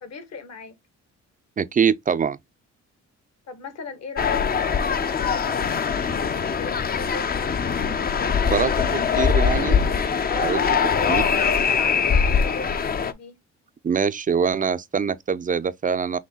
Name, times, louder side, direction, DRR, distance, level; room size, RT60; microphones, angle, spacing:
voice 1, 0.0-0.7 3.5-9.1 10.3-13.4, left 4 dB, 60° left, 1.5 m, -37 dB
voice 2, 1.6-2.4 8.5-8.7 9.2-9.8 10.4-10.6 11.1-11.2 13.8-16.2, right 6 dB, 30° right, 0.4 m, -23 dB
sound 1, 4.2-13.1, left 6 dB, 30° left, 0.5 m, -22 dB
6.1 x 2.2 x 3.9 m
cardioid pair, 90°, 30 cm